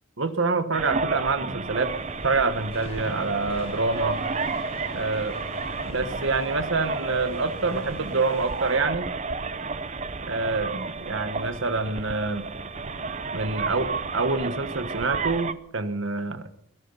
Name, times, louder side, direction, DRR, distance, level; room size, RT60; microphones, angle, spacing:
voice 1, 0.2-1.9 2.2-4.2 4.9-5.4 5.8-9.1 10.2-12.5 13.3-16.5, right 3 dB, 65° right, 10 dB, 1.2 m, -26 dB
sound 1, 0.7-15.5, right 4 dB, 35° right, 0.6 m, -32 dB
sound 2, 1.7-8.8, left 1 dB, 30° left, 4.2 m, -43 dB
21.5 x 12.5 x 5.4 m, 0.75 s
head